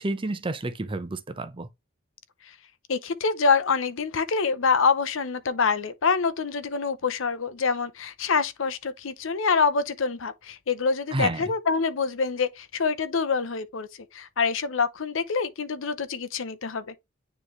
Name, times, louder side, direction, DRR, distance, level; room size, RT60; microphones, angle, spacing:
voice 1, 0.0-1.7 11.1-11.5, right 2 dB, 25° right, 0.6 m, -30 dB
voice 2, 2.9-13.9 14.1-16.9, left 5 dB, 70° left, 0.7 m, -26 dB
9.6 x 3.2 x 3.2 m
head